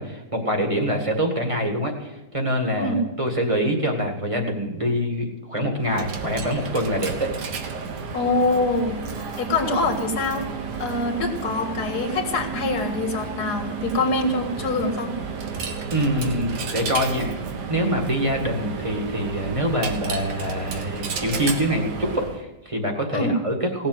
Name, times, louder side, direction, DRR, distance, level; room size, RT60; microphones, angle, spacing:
voice 1, 0.0-7.3 15.9-17.3 17.7-23.9, equal, 20° right, 2 dB, 2.0 m, -25 dB
Coin (dropping), 5.8-22.4, right 5 dB, 80° right, 1.9 m, -32 dB
voice 2, 8.1-9.0 9.4-10.4 10.8-15.1 23.1-23.4, left 2 dB, 70° left, 4 dB, 2.4 m, -24 dB
17.5 x 7.3 x 7.9 m, 1.0 s
omnidirectional pair, 1.8 m